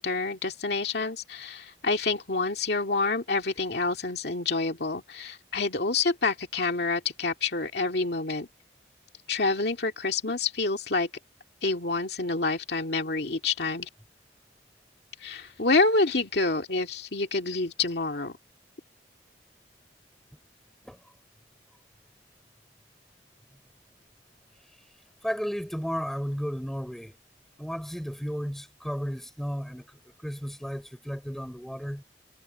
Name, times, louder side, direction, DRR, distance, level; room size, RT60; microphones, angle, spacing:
voice 1, 0.0-8.5 9.3-11.1 11.6-13.9 15.2-18.4, left 3 dB, 60° left, 2.2 m, -27 dB
voice 2, 25.2-27.2 27.6-32.0, equal, ahead, 4.1 m, -34 dB
head